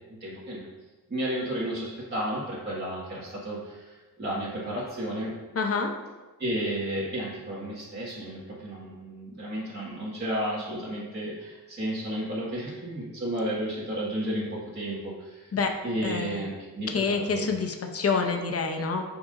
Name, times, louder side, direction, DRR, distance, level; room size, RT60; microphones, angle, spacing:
voice 1, 0.2-0.6 1.1-3.0 3.4-3.6 4.2-5.3 6.4-8.9 9.2-11.3 11.8-14.4 14.8-15.0 15.8-16.5 16.8-17.5, right 1 dB, 25° right, -9 dB, 1.9 m, -32 dB
voice 2, 5.5-5.9 15.5-15.7 16.0-16.4 16.9-19.0, left 4 dB, 35° left, 4 dB, 0.8 m, -27 dB
9.7 x 5.9 x 2.7 m, 1.2 s
cardioid pair, 100°, 40 cm